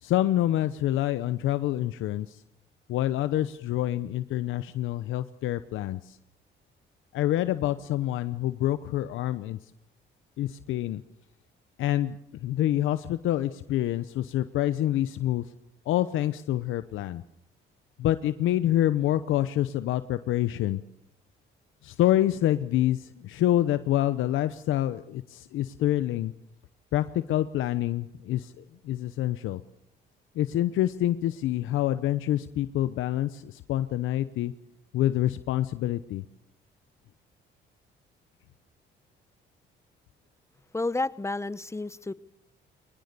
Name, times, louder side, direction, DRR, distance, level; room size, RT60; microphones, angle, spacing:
voice 1, 0.0-2.4 2.9-6.2 7.1-9.6 10.4-11.0 11.8-15.4 15.9-17.2 18.0-20.8 21.8-26.3 26.9-29.6 30.3-34.5 34.9-36.2, left 13 dB, 85° left, 0.9 m, -27 dB
voice 2, 40.7-42.1, left 2 dB, 15° left, 0.9 m, -30 dB
22.5 x 20.0 x 6.9 m
cardioid pair, 90°, 20 cm